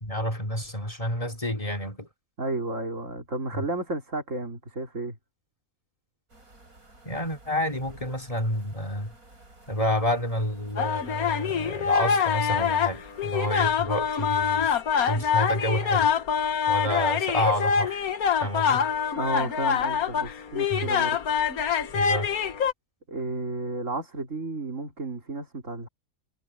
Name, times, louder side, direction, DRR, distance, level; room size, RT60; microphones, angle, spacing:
voice 1, 0.0-2.1 3.5-3.7 7.0-9.1 9.7-14.8 15.1-16.1 16.7-18.0 18.4-18.9 20.7-20.9 21.9-22.3, left 1 dB, 25° left, 3.0 m, -29 dB
voice 2, 2.4-5.2 19.2-21.3 23.1-25.9, right 2 dB, 60° right, 3.7 m, -32 dB
sound 1, 6.3-13.6, right 2 dB, 85° right, 7.7 m, -53 dB
sound 2, 10.8-22.7, left 7 dB, 90° left, 1.6 m, -25 dB
omnidirectional pair, 1.5 m